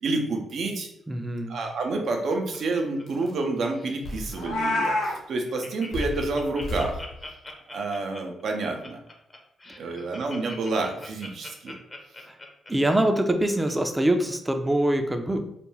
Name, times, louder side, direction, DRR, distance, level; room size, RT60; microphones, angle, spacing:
voice 1, 0.0-0.9 1.5-7.0 7.7-9.0 9.8-11.7, right 3 dB, 65° right, 3 dB, 0.5 m, -29 dB
voice 2, 1.1-1.6 12.7-15.4, right 1 dB, 15° right, 6 dB, 0.4 m, -24 dB
sound 1, 1.6-1.7 2.6-2.7 3.1-3.4 4.0-4.6 4.8-5.2 5.9-7.4, left 2 dB, 65° left, 1.0 m, -36 dB
Laughter, 1.7-3.5 3.7-4.1 4.6-4.7 4.9-5.0 5.3-13.7 14.2-14.3, left 2 dB, 30° left, 0.6 m, -43 dB
Meow, 4.3-5.1, left 2 dB, 90° left, 0.6 m, -26 dB
2.4 x 2.2 x 3.1 m, 0.76 s
hypercardioid pair, 45°, 0 cm